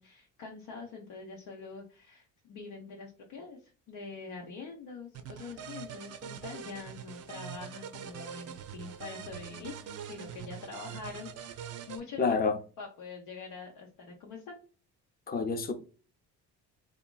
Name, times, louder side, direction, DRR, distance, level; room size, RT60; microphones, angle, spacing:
voice 1, 0.0-14.6, left 4 dB, 80° left, 0.8 m, -45 dB
sound 1, 5.1-12.0, right 8 dB, 40° right, 0.4 m, -43 dB
voice 2, 12.2-12.6 15.3-15.7, left 4 dB, 25° left, 0.5 m, -28 dB
2.9 x 2.5 x 2.2 m
supercardioid pair, 80°, 39 cm